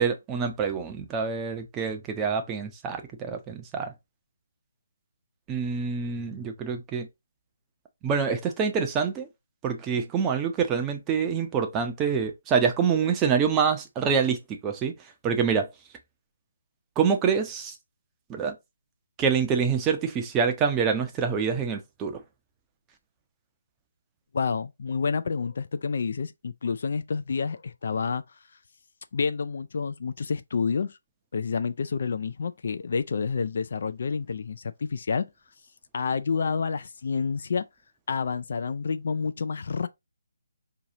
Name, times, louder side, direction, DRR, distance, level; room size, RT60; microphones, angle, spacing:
voice 1, 0.0-3.9 5.5-7.1 8.0-9.3 9.6-14.9 15.2-15.7 17.0-17.7 18.3-18.5 19.2-22.2, right 6 dB, 15° right, 0.6 m, -26 dB
voice 2, 24.3-28.2 29.1-31.0 31.3-35.3 35.9-37.7 38.1-39.9, left 5 dB, 50° left, 0.3 m, -29 dB
4.6 x 2.8 x 2.7 m
figure-of-eight pair, 145°, 0 cm